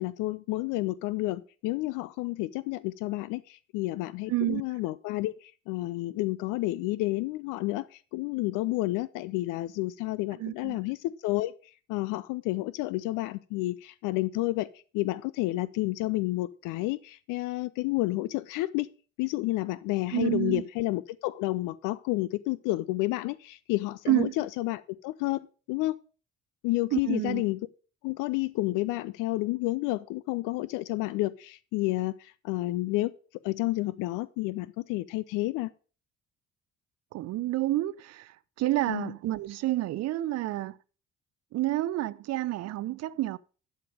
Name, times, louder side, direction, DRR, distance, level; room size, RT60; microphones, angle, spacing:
voice 1, 0.0-7.9 8.1-11.0 11.2-11.5 11.9-14.7 14.9-18.9 19.2-26.0 26.6-27.6 28.0-33.1 33.4-35.7 38.9-39.1, left 19 dB, 55° left, 0.6 m, -30 dB
voice 2, 4.3-4.6 10.4-10.8 20.1-20.6 24.1-24.3 26.9-27.4 37.1-40.8 41.5-43.4, right 16 dB, 45° right, 0.6 m, -29 dB
11.5 x 5.2 x 6.5 m
figure-of-eight pair, 45°, 37 cm